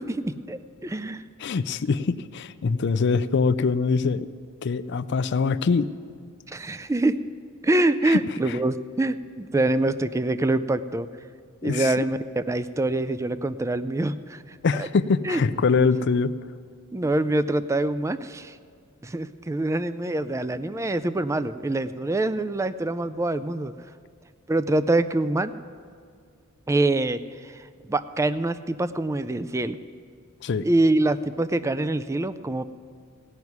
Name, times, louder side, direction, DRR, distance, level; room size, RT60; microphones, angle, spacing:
voice 1, 0.0-1.2 6.5-7.2 7.6-11.1 11.6-14.9 15.2-15.4 16.9-18.6 19.0-23.7 24.5-25.5 26.7-29.8 30.6-32.6, right 2 dB, 15° right, 13 dB, 0.3 m, -25 dB
voice 2, 1.4-4.3 4.6-5.9 8.1-8.2 8.5-8.6 11.6-12.0 14.6-16.3 30.4-30.6, left 4 dB, 55° left, 14 dB, 0.4 m, -23 dB
16.5 x 5.9 x 9.4 m, 2.2 s
head